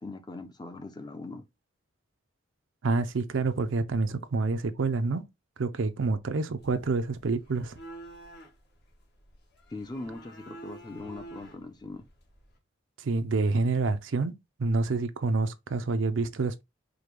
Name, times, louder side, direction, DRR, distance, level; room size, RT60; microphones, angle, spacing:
voice 1, 0.0-1.4 9.7-12.0, left 2 dB, 20° left, 0.5 m, -40 dB
voice 2, 2.8-5.2 5.6-7.7 13.0-14.3 14.6-16.6, right 3 dB, 70° right, 0.5 m, -27 dB
sound 1, 6.6-12.6, right 1 dB, 55° left, 1.2 m, -49 dB
4.9 x 2.2 x 3.0 m
head